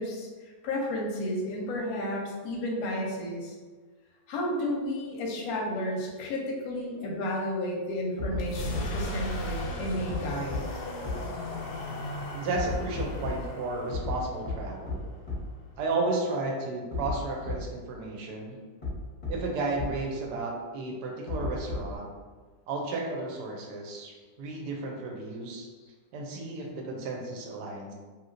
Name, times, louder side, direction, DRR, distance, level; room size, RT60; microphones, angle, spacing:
voice 1, 0.0-3.5 4.3-10.7, left 1 dB, 65° left, -2 dB, 0.9 m, -32 dB
sound 1, 8.2-8.4 8.7-8.8 10.1-10.2 10.5-10.6 11.0-11.1 12.5-13.3 13.9-14.1 14.4-14.5 14.9-15.0 15.3-15.4 16.9-17.1 17.4-17.5 18.8-18.9 19.2-19.3 19.8-19.9 21.3-22.0, left 3 dB, 40° left, 0.6 m, -32 dB
sound 2, 8.3-16.1, left 1 dB, 85° left, 1.3 m, -37 dB
voice 2, 12.3-15.0 15.8-18.6 19.3-22.1 22.7-25.7 26.1-27.9, right 3 dB, 75° right, 0 dB, 1.0 m, -33 dB
2.9 x 2.9 x 2.5 m, 1.4 s
omnidirectional pair, 2.0 m